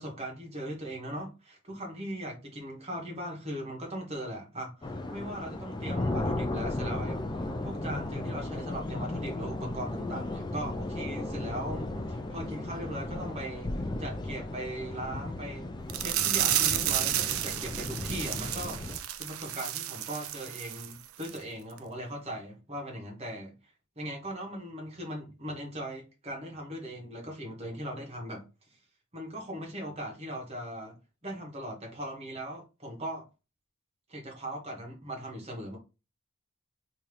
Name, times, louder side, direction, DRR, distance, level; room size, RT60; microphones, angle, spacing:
voice 1, 0.0-7.2 7.6-13.7 14.0-23.5 24.0-28.4 29.1-30.9 31.2-33.2 34.1-35.8, equal, 30° right, 1.3 m, -39 dB
sound 1, 4.8-19.0, left 2 dB, 20° left, 0.3 m, -35 dB
sound 2, 15.9-20.9 21.2-21.4 21.8-21.9, right 12 dB, 80° right, 0.4 m, -31 dB
3.7 x 2.8 x 3.2 m
head